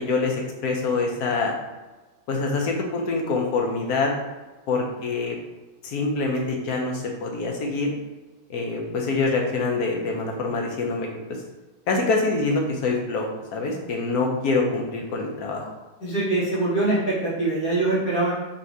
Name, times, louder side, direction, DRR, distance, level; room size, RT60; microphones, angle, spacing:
voice 1, 0.0-1.5 2.3-4.1 4.7-5.3 5.8-7.9 8.5-11.1 11.9-15.7, left 3 dB, 85° left, 1 dB, 1.3 m, -25 dB
voice 2, 16.0-18.3, right 2 dB, 70° left, -7 dB, 1.6 m, -23 dB
3.3 x 2.7 x 4.6 m, 1.2 s
omnidirectional pair, 1.6 m